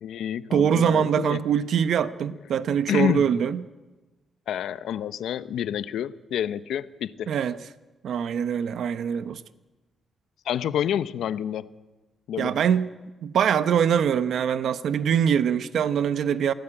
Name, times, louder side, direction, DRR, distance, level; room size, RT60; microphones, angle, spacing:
voice 1, 0.0-1.4 2.9-3.3 4.5-7.3 10.4-11.7 12.3-12.6, left 9 dB, 90° left, 13 dB, 0.9 m, -28 dB
voice 2, 0.5-3.6 7.3-7.6 8.0-9.4 12.4-12.9 13.2-16.5, right 8 dB, 70° right, 12 dB, 0.9 m, -23 dB
27.0 x 17.0 x 8.8 m, 1.2 s
cardioid pair, 120°, 0 cm